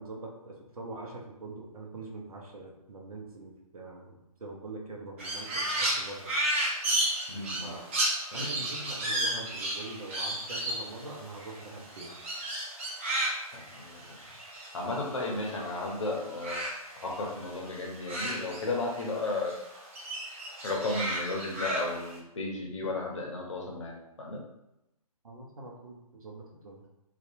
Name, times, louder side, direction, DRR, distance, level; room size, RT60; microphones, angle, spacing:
voice 1, 0.0-6.3 7.6-7.9 8.3-12.2 25.2-26.8, right 2 dB, 70° right, 0 dB, 0.7 m, -43 dB
Crow, 5.2-15.9 16.1-19.2 19.5-22.2, right 1 dB, 20° right, 0.4 m, -33 dB
voice 2, 7.3-7.7 8.3-8.4 13.5-14.2 14.7-16.7 17.0-19.5 20.6-24.4, left 2 dB, 55° left, -1 dB, 0.7 m, -34 dB
2.6 x 2.3 x 2.6 m, 0.88 s
figure-of-eight pair, 140°, 19 cm